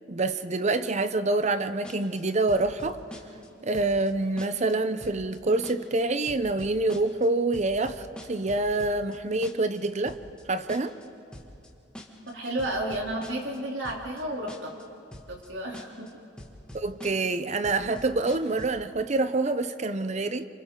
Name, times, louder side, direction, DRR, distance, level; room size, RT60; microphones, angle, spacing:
voice 1, 0.1-3.0 3.6-10.2 10.5-10.9 16.7-20.5, right 2 dB, 40° right, 11 dB, 0.7 m, -26 dB
sound 1, 1.8-2.2 2.5-3.5 3.7-4.1 4.4-4.7 5.0-5.4 5.6-6.0 6.3-7.3 7.5-9.2 9.4-9.8 10.1-10.4 10.7-11.0 11.3-11.7 11.9-12.3 12.6-13.6 13.8-14.2 14.5-14.8 15.1-15.5 15.7-16.1 16.4-17.4 17.6-18.8, equal, 5° left, 2.2 m, -44 dB
voice 2, 12.3-14.7 15.3-16.1, right 1 dB, 80° right, -1 dB, 3.3 m, -32 dB
28.5 x 27.0 x 3.8 m, 2.5 s
head